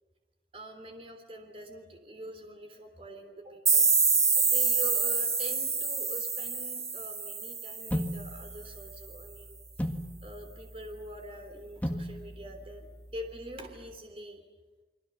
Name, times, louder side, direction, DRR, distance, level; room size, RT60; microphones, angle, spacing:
voice 1, 0.5-9.6 10.2-14.4, equal, 30° right, 5 dB, 3.4 m, -44 dB
sound 1, 3.7-8.3, right 5 dB, 15° right, 1.3 m, -27 dB
sound 2, 7.9-14.0, equal, 10° left, 1.7 m, -39 dB
29.5 x 24.0 x 7.3 m, 1.2 s
head